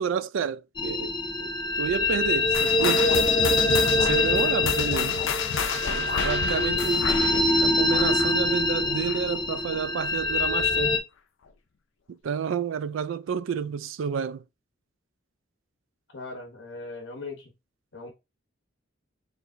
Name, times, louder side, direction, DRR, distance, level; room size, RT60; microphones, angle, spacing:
voice 1, 0.0-1.5 1.8-3.1 4.0-5.2 5.9-7.1 7.6-11.0 12.1-14.4, right 7 dB, 80° right, 0.3 m, -30 dB
sound 1, 0.8-11.0, left 2 dB, 20° left, 0.6 m, -24 dB
sound 2, 2.5-9.4 9.7-10.0 10.6-10.7 11.5-11.6, left 6 dB, 80° left, 0.5 m, -31 dB
voice 2, 16.1-17.5 17.9-18.1, left 3 dB, 60° left, 0.9 m, -39 dB
4.7 x 3.3 x 2.6 m
head